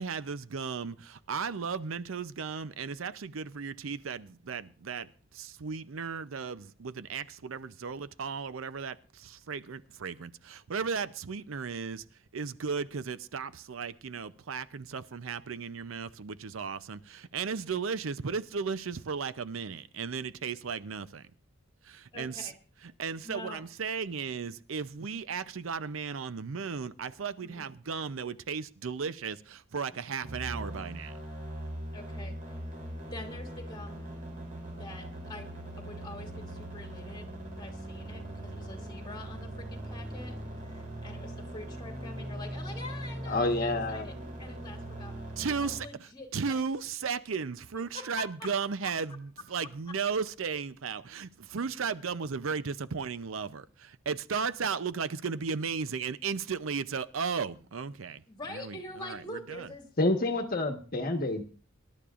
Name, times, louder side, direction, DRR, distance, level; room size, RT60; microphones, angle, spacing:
voice 1, 0.0-12.0 12.3-21.3 21.8-22.5 22.8-31.2 45.4-58.2 58.5-59.7, right 5 dB, 80° right, 0.6 m, -35 dB
voice 2, 22.1-22.4 23.2-23.6 27.4-27.6 31.9-32.3 33.1-34.1 34.7-37.3 37.6-40.3 40.6-44.1 44.4-45.1 45.6-46.6 47.9-48.5 58.3-59.9, left 2 dB, 20° left, 2.5 m, -45 dB
sound 1, 30.2-45.8, right 1 dB, 40° right, 3.3 m, -40 dB
voice 3, 43.3-44.1 60.0-61.4, left 2 dB, 45° left, 1.3 m, -28 dB
25.0 x 12.0 x 2.5 m
head